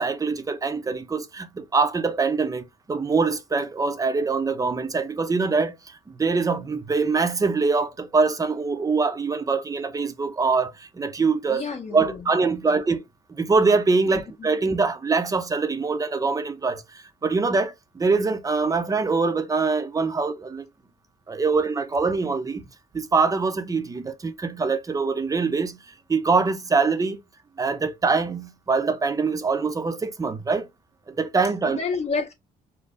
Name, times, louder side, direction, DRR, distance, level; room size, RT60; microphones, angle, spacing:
voice 1, 0.0-11.6 11.9-13.0 13.4-20.6 21.3-22.6 22.9-25.8 26.1-27.2 27.6-30.7 31.1-31.8, right 4 dB, 25° right, 0.8 m, -24 dB
voice 2, 11.5-12.8 14.4-14.5 31.7-32.3, left 4 dB, 45° left, 1.7 m, -30 dB
5.3 x 2.2 x 3.9 m
cardioid pair, 115°, 15 cm